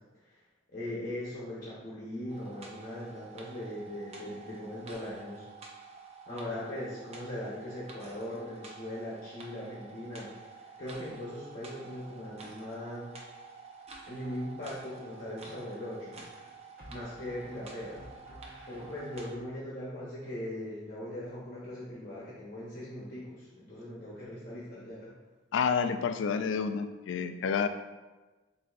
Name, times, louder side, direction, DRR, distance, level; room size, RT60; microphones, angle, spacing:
voice 1, 0.7-5.4 6.3-13.1 14.1-16.2 16.9-18.0 18.7-25.1, left 1 dB, 50° left, -8 dB, 1.0 m, -40 dB
sound 1, 2.3-19.3, right 4 dB, 35° right, 0.6 m, -49 dB
sound 2, 14.6-14.7 16.8-19.4, equal, 50° right, 1.1 m, -52 dB
voice 2, 25.5-27.7, left 6 dB, 75° left, 9 dB, 0.3 m, -29 dB
7.3 x 2.8 x 2.5 m, 1.2 s
head